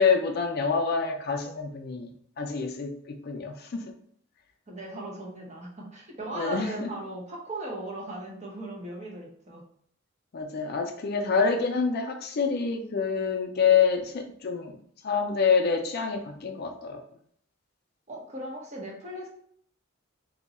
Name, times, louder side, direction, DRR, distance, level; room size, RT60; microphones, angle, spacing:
voice 1, 0.0-2.1 2.4-3.8 6.3-6.9 10.3-14.8 15.0-17.0, left 5 dB, 50° left, 4 dB, 0.4 m, -26 dB
voice 2, 4.7-9.6 18.1-19.3, right 1 dB, 35° right, -2 dB, 0.9 m, -38 dB
2.8 x 2.2 x 4.0 m, 0.64 s
head